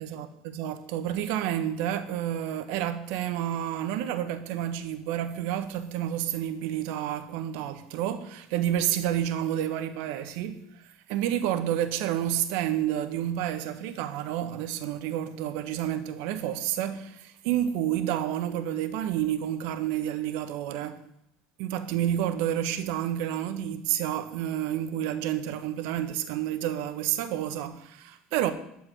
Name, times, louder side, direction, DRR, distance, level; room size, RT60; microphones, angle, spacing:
voice 1, 0.0-21.0 21.6-28.5, right 11 dB, 75° right, 1.4 m, -30 dB
12.5 x 5.5 x 9.1 m
supercardioid pair, 110°, 3 cm